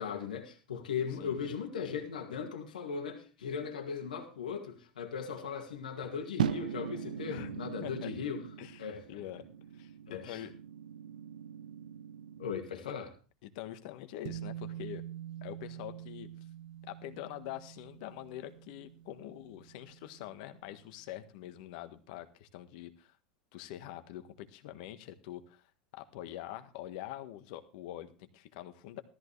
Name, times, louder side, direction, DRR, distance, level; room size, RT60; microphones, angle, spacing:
voice 1, 0.0-8.4 8.8-9.0 10.1-10.4 12.4-13.1, left 6 dB, 90° left, 1.9 m, -38 dB
sound 1, 6.4-12.6, right 8 dB, 85° right, 0.8 m, -39 dB
voice 2, 8.6-9.4 9.7-10.5 12.9-13.0 13.4-15.0 15.4-16.3 16.8-23.2 23.5-29.0, left 13 dB, 65° left, 1.5 m, -45 dB
sound 2, 14.2-20.8, right 11 dB, 65° right, 1.7 m, -46 dB
14.5 x 13.5 x 3.3 m
hypercardioid pair, 95°, 4 cm